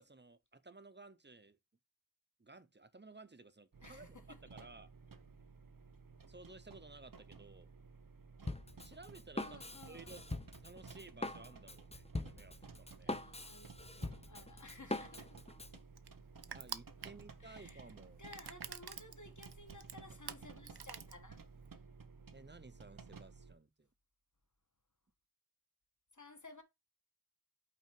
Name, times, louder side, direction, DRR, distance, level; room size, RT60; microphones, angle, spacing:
voice 1, 0.0-1.6 2.4-4.9 6.3-7.7 8.8-10.2 10.6-13.2 16.5-18.2 22.3-23.9, right 3 dB, 30° right, 0.7 m, -56 dB
sound 1, 3.7-23.6, right 4 dB, 60° right, 0.8 m, -56 dB
voice 2, 3.8-4.4 9.4-10.2 13.0-15.5 17.0-17.9 18.2-21.4 26.1-26.6, left 2 dB, 50° left, 1.5 m, -56 dB
Drum kit, 8.5-15.8, left 2 dB, 15° left, 0.6 m, -43 dB
Crushing, 14.9-21.7, right 8 dB, 85° right, 0.6 m, -50 dB
5.7 x 4.2 x 4.5 m
wide cardioid pair, 45°, 38 cm